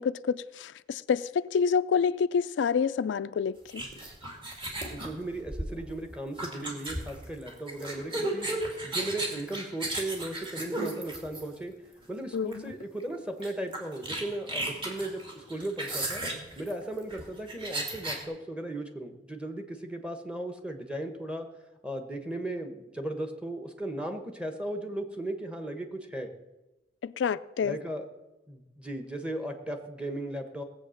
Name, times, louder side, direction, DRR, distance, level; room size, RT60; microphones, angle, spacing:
voice 1, 0.0-3.8 12.3-12.8 27.0-27.8, left 6 dB, 80° left, 0.4 m, -28 dB
sound 1, 3.7-11.7 12.5-12.7 13.0-13.1 13.4-18.2, right 1 dB, 30° right, 2.5 m, -35 dB
voice 2, 4.9-8.5 8.8-11.7 12.1-16.2 16.6-21.5 21.8-26.3 27.6-28.0 28.5-30.6, right 1 dB, 5° right, 1.2 m, -36 dB
18.5 x 7.8 x 6.4 m
head